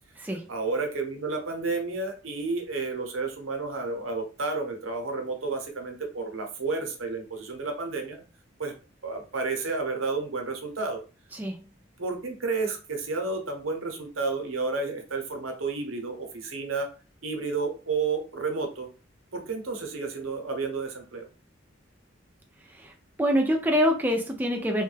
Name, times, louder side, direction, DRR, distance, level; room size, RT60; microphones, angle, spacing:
voice 1, 0.5-8.2 8.6-8.7 9.0-11.0 12.0-16.9 17.2-18.9 19.3-21.3, right 3 dB, 85° right, 4 dB, 0.8 m, -31 dB
voice 2, 11.3-11.6 22.7-22.9 23.2-24.8, equal, 10° right, 2 dB, 0.4 m, -25 dB
3.1 x 2.2 x 3.2 m, 0.35 s
head